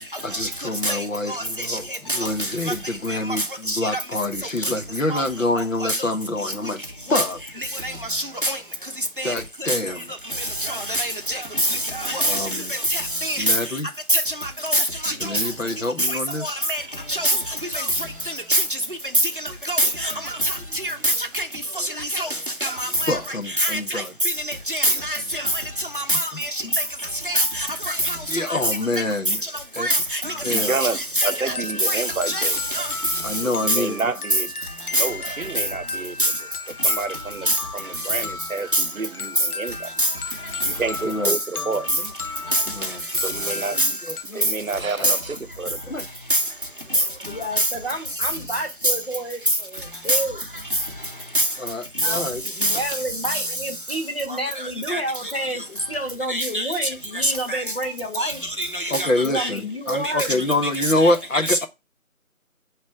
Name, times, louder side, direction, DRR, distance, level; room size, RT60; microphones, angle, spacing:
voice 1, 0.2-6.8 7.1-7.4 9.2-10.1 12.2-12.7 13.4-13.9 15.2-16.6 20.4-20.5 23.1-24.1 26.1-26.2 26.6-26.7 28.3-29.4 29.7-29.9 30.4-30.7 33.2-34.0 41.0-41.7 42.8-43.0 43.7-43.9 44.3-44.4 45.0-45.1 45.9-46.1 51.6-52.4 58.9-61.7, left 2 dB, 65° left, 1.1 m, -26 dB
voice 2, 7.8-8.6 9.2-9.3 9.7-9.8 10.4-12.4 12.9-13.5 14.1-15.1 16.1-16.8 17.1-17.4 17.7-17.8 18.5-18.6 19.7-20.1 20.4-20.5 20.8-21.5 21.8-22.3 22.6-23.2 23.6-24.0 24.7-25.4 25.9-26.5 27.3-28.2 28.5-28.6 29.8-30.7 31.2-31.3 31.8-32.9 33.7-33.8 34.9-35.0 36.2-36.3 37.5-37.6 38.7-38.8 40.0-40.1 41.2-41.3 42.5-42.6 43.8-43.9 45.0-45.1 46.3-46.4 47.6-47.7 50.1-50.2 51.3-51.4 52.1-52.2 52.6-52.8 54.9-55.0 56.3-56.7 57.2-57.6 58.2-58.3 58.6-59.1 59.3-59.5 61.0-61.1 61.4-61.6, right 1 dB, 35° right, 0.8 m, -23 dB
voice 3, 30.4-32.9 33.4-34.5 34.9-36.4 36.8-39.9 40.6-42.0 43.2-44.0 44.3-45.9, right 4 dB, 70° right, 0.8 m, -30 dB
sound 1, 31.2-44.2, left 4 dB, 85° left, 0.8 m, -36 dB
voice 4, 46.9-50.4 52.0-58.4 59.2-60.4, right 1 dB, 45° left, 1.4 m, -30 dB
7.4 x 3.2 x 4.7 m
figure-of-eight pair, 175°, 43 cm